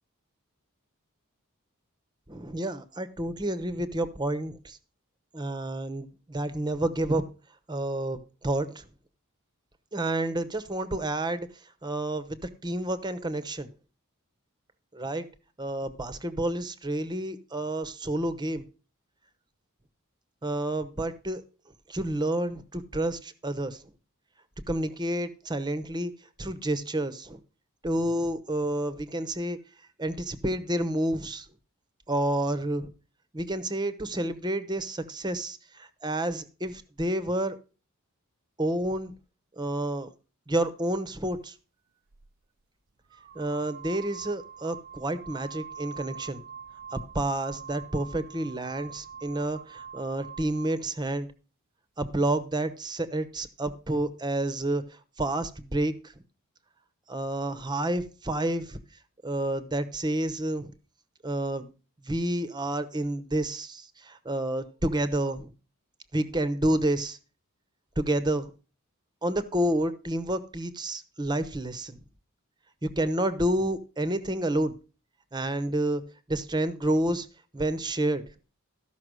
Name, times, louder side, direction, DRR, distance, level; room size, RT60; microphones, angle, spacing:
voice 1, 2.3-4.8 5.3-7.2 7.7-8.8 9.9-11.5 11.8-13.7 14.9-15.3 15.6-18.6 20.4-21.4 21.9-23.8 24.7-26.1 26.4-27.4 27.8-29.6 30.0-31.5 32.1-32.9 33.3-37.6 38.6-39.1 39.6-40.1 40.5-41.5 43.3-46.4 46.9-51.3 52.0-54.8 55.2-55.9 57.1-58.8 59.2-60.7 61.2-61.7 62.0-65.5 66.1-67.2 68.0-68.5 69.2-72.0 72.8-74.7 75.3-76.0 76.3-77.3 77.5-78.2, right 1 dB, 20° right, 12 dB, 0.9 m, -29 dB
sound 1, 42.1-42.3 43.1-50.8, right 7 dB, 40° right, 0.5 m, -44 dB
13.5 x 5.9 x 6.2 m, 0.35 s
head